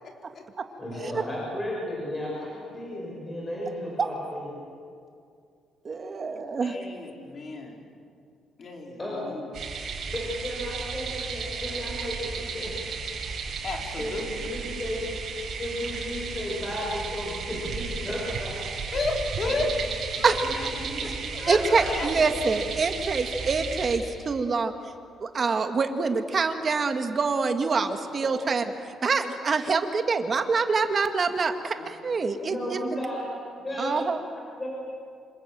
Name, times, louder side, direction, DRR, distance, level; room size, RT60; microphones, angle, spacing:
voice 1, 0.8-4.5 9.0-9.3 10.1-12.9 14.0-15.0 15.6-18.6 19.4-19.6 20.4-21.1 21.5-22.2 22.6-22.7 32.5-33.3 33.6-34.0 34.6-34.7, left 1 dB, 15° left, -4 dB, 6.2 m, -34 dB
voice 2, 5.9-6.7 20.2-20.3 21.5-24.7 25.2-28.6 29.0-32.8 33.8-34.2, right 4 dB, 35° right, 7 dB, 1.7 m, -25 dB
voice 3, 6.6-7.9 8.6-9.5 13.6-14.3 18.9-19.7 20.1-20.7 21.0-21.1 21.3-22.1 31.8-31.9, left 3 dB, 40° left, 1 dB, 4.2 m, -33 dB
sound 1, 9.5-24.0, right 5 dB, 55° right, 5.4 m, -34 dB
27.0 x 26.5 x 7.5 m, 2.3 s
cardioid pair, 150°, 0 cm